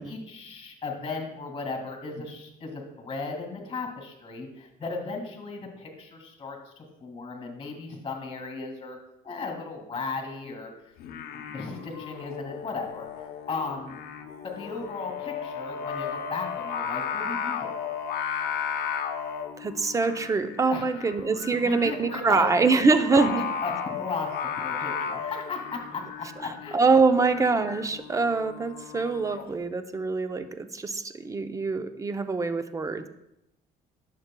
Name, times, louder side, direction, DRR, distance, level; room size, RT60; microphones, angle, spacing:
voice 1, 0.0-9.0 9.2-10.7 11.3-13.1 13.5-14.0 14.6-17.9 20.7-20.9 21.6-22.8 23.3-23.4 23.6-26.8, left 4 dB, 30° left, 4 dB, 2.0 m, -36 dB
Singing, 11.0-29.5, left 7 dB, 70° left, 0.7 m, -35 dB
voice 2, 19.6-23.5 26.4-33.1, right 4 dB, 20° right, 9 dB, 0.5 m, -24 dB
11.0 x 6.7 x 2.2 m, 0.84 s
cardioid pair, 110°, 17 cm